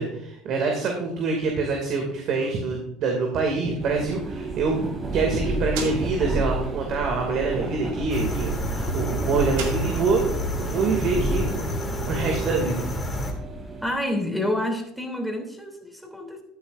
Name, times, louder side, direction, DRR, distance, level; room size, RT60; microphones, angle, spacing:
voice 1, 0.0-4.8 5.1-12.8, right 4 dB, 55° right, 2 dB, 2.4 m, -26 dB
sound 1, 3.8-13.9, right 2 dB, 30° right, 2.5 m, -31 dB
sound 2, 5.3-10.4, right 5 dB, 75° right, 2.4 m, -39 dB
sound 3, 8.1-13.3, equal, 20° left, 2.9 m, -29 dB
voice 2, 13.8-16.4, left 1 dB, ahead, 2 dB, 3.1 m, -28 dB
13.0 x 9.8 x 2.6 m, 0.77 s
hypercardioid pair, 80°, 0 cm